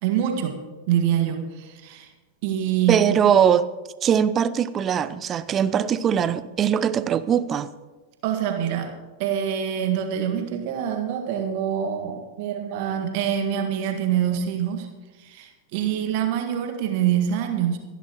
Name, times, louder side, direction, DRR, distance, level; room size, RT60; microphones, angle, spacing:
voice 1, 0.0-2.1 2.4-3.2 8.2-8.9 9.2-14.9 15.2-17.8, right 9 dB, 45° right, 1.7 m, -25 dB
voice 2, 2.9-3.7 4.0-7.7, right 8 dB, 25° right, 0.5 m, -21 dB
26.5 x 11.0 x 3.0 m
figure-of-eight pair, 90°, 0 cm